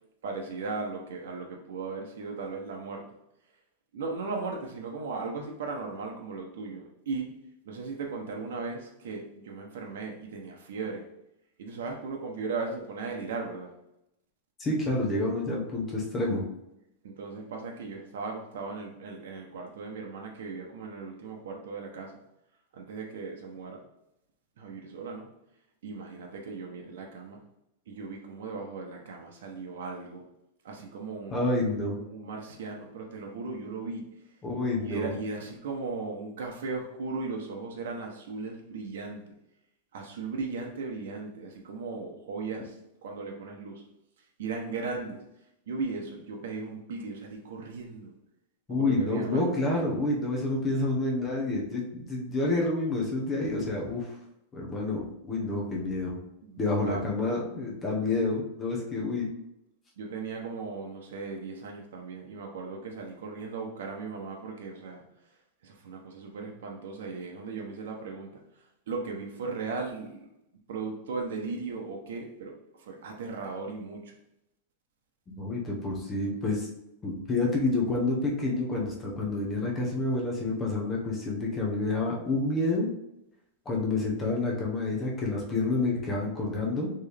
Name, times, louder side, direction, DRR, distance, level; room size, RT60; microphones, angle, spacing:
voice 1, 0.2-3.0 3.9-7.3 7.6-11.1 11.6-13.7 17.0-22.2 22.7-23.8 24.6-25.3 25.8-27.4 27.9-30.2 30.6-31.5 32.0-34.0 34.8-39.2 39.9-43.8 44.4-45.2 45.7-48.1 48.7-49.4 56.4-57.0 60.0-65.0 65.6-68.4 68.9-70.3 70.7-74.1, right 4 dB, 75° right, 0 dB, 0.9 m, -37 dB
voice 2, 14.6-16.4 31.3-31.9 34.4-35.1 48.7-54.1 54.5-56.2 56.6-59.3 75.3-76.7 77.0-82.9 83.7-86.9, left 2 dB, 15° left, -2 dB, 0.9 m, -28 dB
4.3 x 3.2 x 3.4 m, 0.84 s
supercardioid pair, 170°, 0 cm